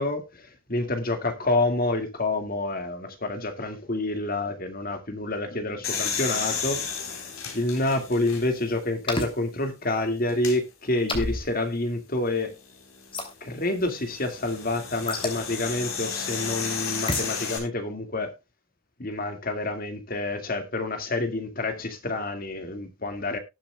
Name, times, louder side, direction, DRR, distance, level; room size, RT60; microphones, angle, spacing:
voice 1, 0.0-7.1 7.5-12.5 13.4-18.3 19.0-23.4, left 2 dB, 45° left, 2.0 m, -28 dB
sound 1, 5.8-8.8 9.3-9.4 10.3-10.6 12.7-17.6, left 6 dB, 90° left, 3.8 m, -33 dB
sound 2, 9.1-9.3 11.1-11.5 13.1-13.3 15.1-15.4 17.1-17.3, left 2 dB, 25° left, 2.8 m, -28 dB
19.0 x 7.5 x 2.3 m
head